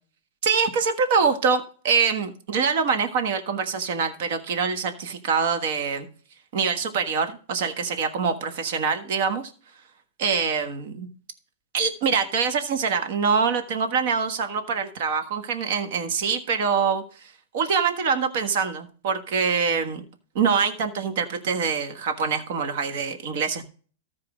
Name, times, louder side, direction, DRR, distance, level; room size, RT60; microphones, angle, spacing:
voice 1, 0.4-6.1 6.5-9.5 10.2-11.1 11.7-17.0 17.5-20.0 20.3-23.6, right 5 dB, 55° right, 7 dB, 1.4 m, -24 dB
14.0 x 4.7 x 4.9 m, 0.42 s
hypercardioid pair, 140°, 0 cm